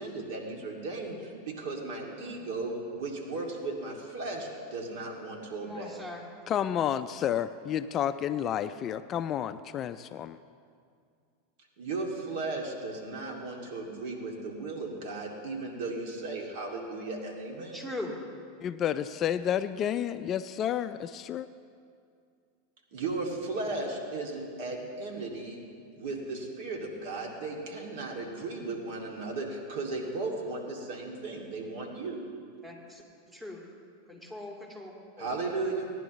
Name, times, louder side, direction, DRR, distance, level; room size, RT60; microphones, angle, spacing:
voice 1, 0.0-6.0 11.8-17.9 22.9-25.6 26.0-32.3 35.2-35.9, right 3 dB, 60° right, 0 dB, 2.5 m, -36 dB
voice 2, 5.6-6.2 17.7-18.2 32.6-33.0 33.3-33.6 34.1-35.3, left 1 dB, 10° right, -1 dB, 2.1 m, -40 dB
voice 3, 6.5-10.4 18.6-21.5, left 10 dB, 35° left, 13 dB, 0.3 m, -30 dB
18.0 x 10.5 x 3.1 m, 2.3 s
hypercardioid pair, 100°, 0 cm